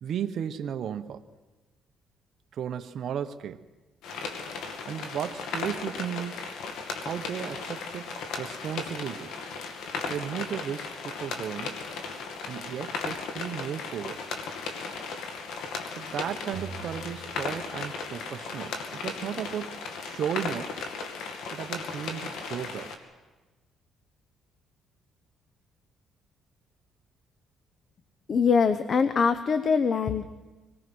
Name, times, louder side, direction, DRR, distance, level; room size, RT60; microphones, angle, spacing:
voice 1, 0.0-1.2 2.5-3.6 4.9-6.5 7.0-9.3 10.1-11.8 12.5-14.3 15.9-20.8 21.5-22.9, right 9 dB, 60° right, 6 dB, 0.9 m, -35 dB
sound 1, 4.0-23.0, left 4 dB, 80° left, 2.4 m, -36 dB
sound 2, 16.5-18.5, right 6 dB, 80° right, 2.3 m, -45 dB
voice 2, 28.3-30.2, left 5 dB, 40° left, 12 dB, 0.9 m, -23 dB
25.5 x 19.0 x 6.2 m, 1.2 s
cardioid pair, 110°, 0 cm